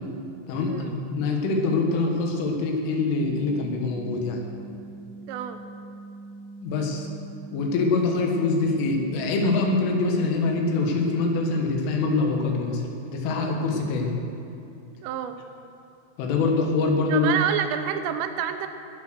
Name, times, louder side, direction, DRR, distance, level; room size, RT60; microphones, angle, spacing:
voice 1, 0.5-4.4 6.6-7.1 7.5-14.1 16.2-17.3, left 3 dB, 80° left, 1 dB, 4.1 m, -24 dB
sound 1, 3.3-10.3, right 3 dB, 65° right, 2.1 m, -42 dB
voice 2, 5.3-5.6 15.0-15.4 17.1-18.7, right 9 dB, 90° right, 9 dB, 3.4 m, -28 dB
20.0 x 7.8 x 6.4 m, 2.7 s
omnidirectional pair, 5.6 m